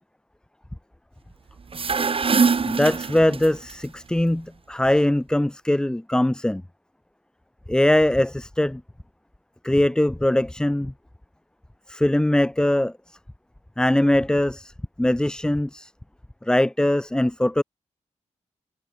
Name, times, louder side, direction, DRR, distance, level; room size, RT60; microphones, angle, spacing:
sound 1, 1.6-3.7, right 5 dB, 45° right, 1.0 m, -23 dB
voice 1, 2.7-6.6 7.7-8.8 9.6-10.9 11.9-12.9 13.8-14.7 15.0-15.9 16.4-17.6, left 1 dB, 5° left, 0.4 m, -21 dB
cardioid pair, 50°, 13 cm